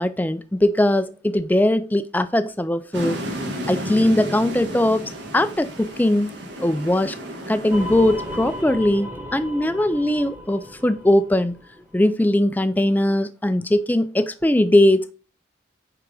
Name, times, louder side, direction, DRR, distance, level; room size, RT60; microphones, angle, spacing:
voice 1, 0.0-3.2 3.7-5.0 5.3-6.3 6.6-7.2 7.5-11.6 11.9-15.1, left 1 dB, 10° left, 0.4 m, -20 dB
sound 1, 2.9-8.6, equal, 60° right, 1.7 m, -33 dB
sound 2, 7.7-12.1, left 1 dB, 10° right, 1.2 m, -35 dB
9.3 x 3.9 x 4.8 m
head